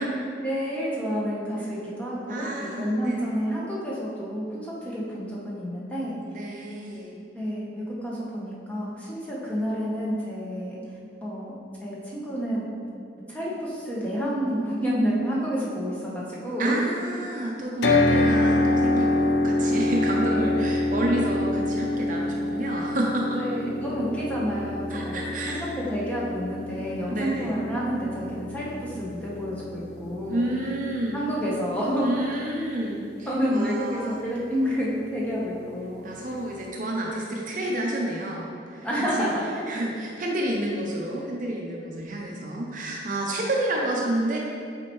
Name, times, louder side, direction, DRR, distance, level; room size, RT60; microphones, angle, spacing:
voice 1, 0.4-6.1 7.3-10.8 11.2-12.7 13.3-16.8 20.2-20.5 23.3-25.2 25.5-30.5 31.1-32.1 33.2-36.1 38.8-39.6, equal, 5° left, -7 dB, 1.0 m, -29 dB
voice 2, 2.3-3.2 6.3-7.2 16.6-23.4 24.9-25.7 27.1-27.5 30.3-31.2 32.0-34.2 36.0-39.3 39.7-44.4, right 1 dB, 45° right, -2 dB, 0.6 m, -30 dB
sound 1, 17.8-31.9, left 2 dB, 60° left, 0.5 m, -26 dB
7.4 x 4.2 x 3.1 m, 2.3 s
head